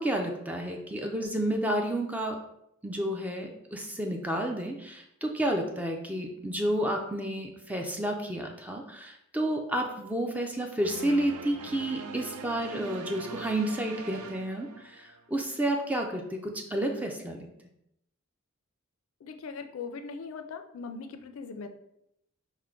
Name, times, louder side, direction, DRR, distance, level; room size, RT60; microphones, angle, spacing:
voice 1, 0.0-2.4 2.8-17.5, right 1 dB, 5° right, 2 dB, 0.3 m, -31 dB
sound 1, 10.8-15.3, right 5 dB, 85° right, 0.3 m, -42 dB
voice 2, 19.2-21.7, left 5 dB, 70° left, 7 dB, 0.4 m, -40 dB
4.4 x 2.1 x 3.6 m, 0.79 s
head